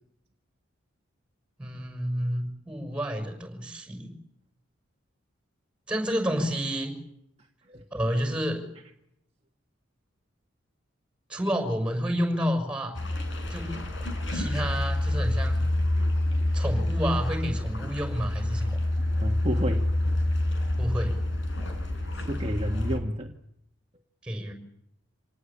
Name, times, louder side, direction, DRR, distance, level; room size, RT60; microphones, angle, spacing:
voice 1, 1.6-4.2 5.9-6.9 7.9-8.7 11.3-12.9 13.5-13.8 14.3-15.6 16.5-18.8 20.8-21.1 24.2-24.5, equal, 5° right, 6 dB, 6.1 m, -29 dB
sound 1, 12.9-23.0, left 1 dB, 60° left, 5.2 m, -27 dB
voice 2, 18.8-20.0 21.9-23.3, equal, 30° right, 2 dB, 1.6 m, -32 dB
27.0 x 19.0 x 8.6 m, 0.76 s
head